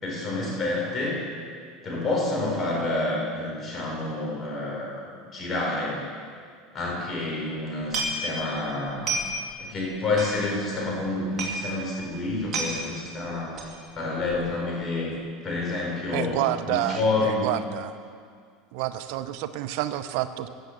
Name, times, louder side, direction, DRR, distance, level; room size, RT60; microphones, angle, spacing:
voice 1, 0.0-1.2 1.8-6.0 6.7-9.2 9.6-13.6 13.9-15.2 15.4-17.5, left 2 dB, 30° left, -3 dB, 4.5 m, -28 dB
sound 1, 7.8-8.6 8.9-9.5 9.8-9.9 10.1-10.8 11.1-11.2 11.4-11.6 12.0-12.1 12.3-12.8 13.6-13.8 14.2-14.5 14.8-14.9, right 2 dB, 35° right, 2.6 m, -30 dB
voice 2, 16.1-18.0 18.7-20.5, right 13 dB, 70° right, 12 dB, 0.6 m, -29 dB
14.5 x 7.3 x 7.9 m, 2.1 s
supercardioid pair, 120°, 0 cm